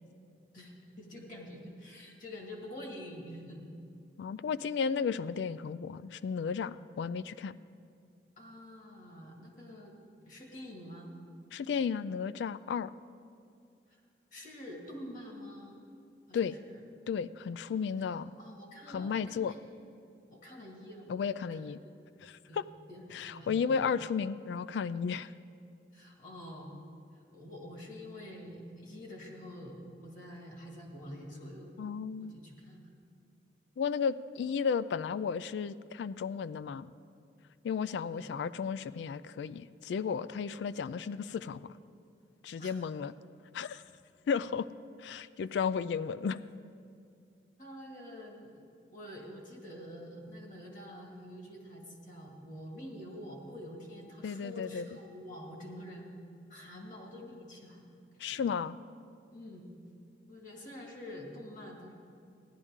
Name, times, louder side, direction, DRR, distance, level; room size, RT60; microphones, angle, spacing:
voice 1, 0.5-3.7 8.4-9.9 10.2-11.1 13.9-14.0 14.3-15.8 16.3-16.8 18.4-19.6 20.3-21.1 21.4-21.6 22.5-23.6 25.9-26.7 27.3-31.7 32.2-32.9 34.4-34.5 38.1-38.3 42.6-42.7 47.6-48.5 48.9-56.1 56.5-57.9 58.3-58.4 59.3-59.7 60.3-61.9, left 1 dB, 45° left, 0 dB, 1.8 m, -47 dB
voice 2, 4.2-7.5 11.5-12.9 16.3-16.6 17.1-18.3 18.9-19.5 21.1-21.8 22.2-22.6 23.1-25.3 31.8-32.4 33.8-36.9 37.6-41.7 42.4-43.1 43.5-43.8 44.3-44.7 45.0-46.4 54.2-54.9 58.2-58.8, left 6 dB, 80° left, 15 dB, 0.3 m, -33 dB
15.5 x 11.0 x 3.6 m, 2.4 s
head